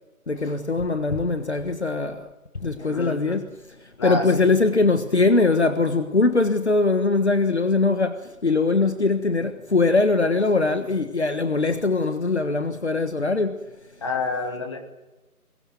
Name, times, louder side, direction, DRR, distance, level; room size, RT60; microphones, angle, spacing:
voice 1, 0.3-2.3 2.6-3.5 4.0-13.7, left 3 dB, 45° left, 1.6 m, -21 dB
voice 2, 2.9-3.4 4.0-4.5 14.0-14.8, left 3 dB, 20° left, 2.6 m, -28 dB
23.5 x 21.0 x 9.4 m
figure-of-eight pair, 165°, 45 cm